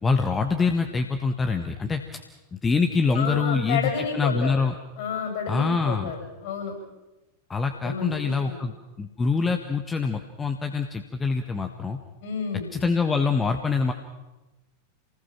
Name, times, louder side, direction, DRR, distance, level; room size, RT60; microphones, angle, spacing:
voice 1, 0.0-2.2 2.5-4.7 5.5-6.1 7.5-8.7 9.0-12.0 12.7-13.9, left 4 dB, 15° left, 6 dB, 1.5 m, -25 dB
voice 2, 3.1-4.5 5.0-6.2 6.4-6.7 7.8-8.6 12.2-12.7, left 6 dB, 50° left, 2 dB, 7.6 m, -30 dB
28.0 x 19.5 x 6.0 m, 1.0 s
figure-of-eight pair, 90°, 0 cm